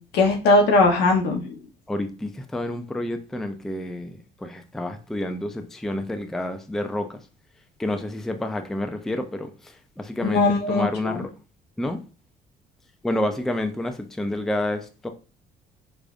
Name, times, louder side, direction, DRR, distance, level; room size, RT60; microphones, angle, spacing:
voice 1, 0.1-1.6 10.2-11.2, left 2 dB, 75° left, 0.9 m, -20 dB
voice 2, 1.9-7.2 7.8-11.3 11.8-12.0 13.0-15.1, left 1 dB, ahead, 0.3 m, -29 dB
4.9 x 2.4 x 2.4 m
cardioid pair, 110°, 17 cm